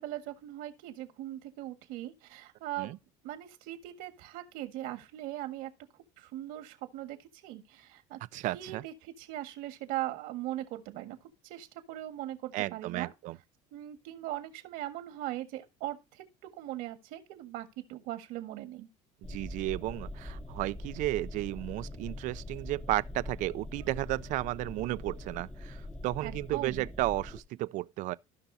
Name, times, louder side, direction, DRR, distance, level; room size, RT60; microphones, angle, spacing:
voice 1, 0.0-2.9 3.2-5.7 6.2-8.2 8.5-13.1 13.7-18.9 23.7-23.9 26.2-26.8, right 14 dB, 80° right, 1.7 m, -40 dB
voice 2, 8.3-8.8 12.5-13.4 19.3-28.1, right 18 dB, 60° right, 0.4 m, -33 dB
sound 1, 19.2-27.4, left 1 dB, 10° left, 0.7 m, -43 dB
16.0 x 5.8 x 2.7 m
cardioid pair, 135°, 15 cm